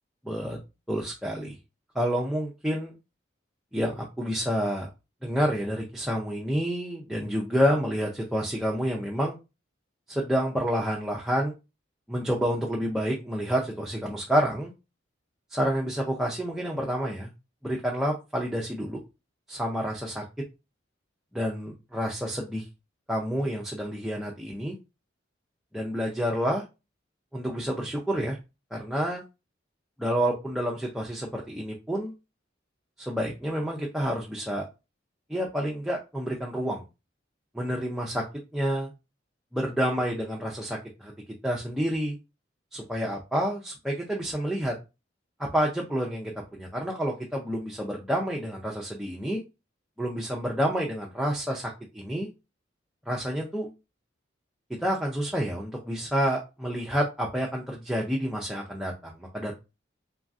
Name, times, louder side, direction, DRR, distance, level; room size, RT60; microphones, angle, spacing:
voice 1, 0.3-0.6 0.9-1.6 1.9-2.9 3.7-4.9 5.2-9.3 10.1-11.5 12.1-14.7 15.5-17.3 17.6-19.0 19.5-20.2 21.3-22.7 23.1-24.8 25.7-26.6 27.3-28.4 28.7-29.2 30.0-32.1 33.0-34.7 35.3-36.8 37.5-38.2 38.5-38.9 39.5-41.1 41.4-42.2 42.7-44.7 45.4-49.4 50.0-52.3 53.1-53.7 54.8-59.5, equal, ahead, -3 dB, 0.3 m, -29 dB
3.1 x 2.5 x 2.3 m, 0.27 s
head